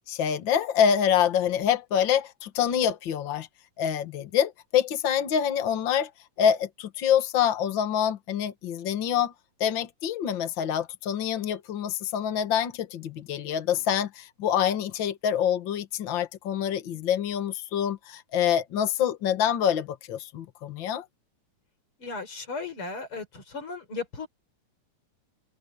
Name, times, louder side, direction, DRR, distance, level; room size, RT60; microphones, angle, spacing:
voice 1, 0.1-3.5 3.8-6.1 6.4-9.3 9.6-21.0, left 9 dB, 75° left, 1.0 m, -26 dB
voice 2, 22.0-24.3, left 4 dB, 35° left, 4.8 m, -36 dB
omnidirectional pair, 4.3 m